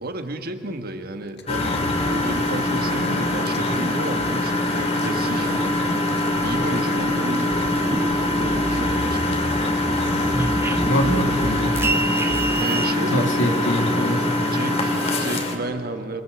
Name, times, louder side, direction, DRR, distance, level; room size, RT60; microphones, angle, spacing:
voice 1, 0.0-5.7 6.4-10.4 12.6-13.5 14.5-16.2, right 2 dB, 55° right, 7 dB, 1.6 m, -32 dB
sound 1, 1.4-11.1, left 1 dB, 65° left, 1.6 m, -36 dB
Engine, 1.5-15.6, left 1 dB, 35° left, 2.5 m, -23 dB
sound 2, 7.5-9.2 9.5-12.9, right 2 dB, 15° right, 0.5 m, -28 dB
voice 2, 10.8-11.7 13.1-14.3, equal, 90° left, 3 dB, 2.8 m, -23 dB
27.5 x 22.5 x 7.1 m, 2.8 s
head